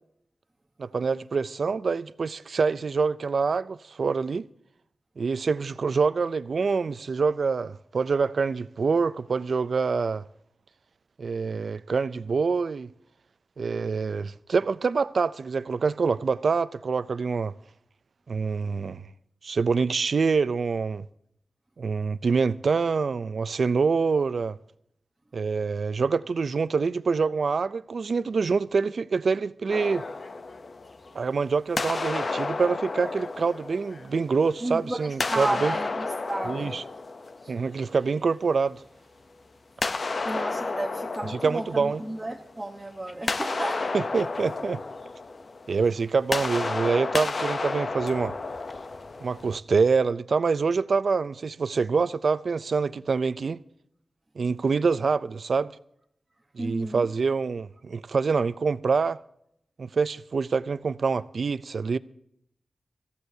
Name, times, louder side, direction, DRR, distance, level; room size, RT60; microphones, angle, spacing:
voice 1, 0.8-4.5 5.2-10.2 11.2-12.9 13.6-17.5 18.3-19.0 19.4-21.1 21.8-24.6 25.3-30.1 31.1-35.8 36.5-36.8 37.5-38.8 41.3-42.0 43.9-44.8 45.7-48.4 49.2-53.6 54.4-55.7 56.5-59.2 59.8-62.0, right 5 dB, 60° right, 0.5 m, -26 dB
sound 1, 29.7-31.3 31.8-34.5 35.1-38.0 39.8-42.6 42.9-49.6, left 3 dB, 45° left, 0.7 m, -32 dB
voice 2, 34.6-36.7 37.4-37.5 40.2-43.9 56.6-57.1, right 1 dB, 15° right, 1.0 m, -33 dB
25.5 x 15.0 x 2.8 m
wide cardioid pair, 130°, 0 cm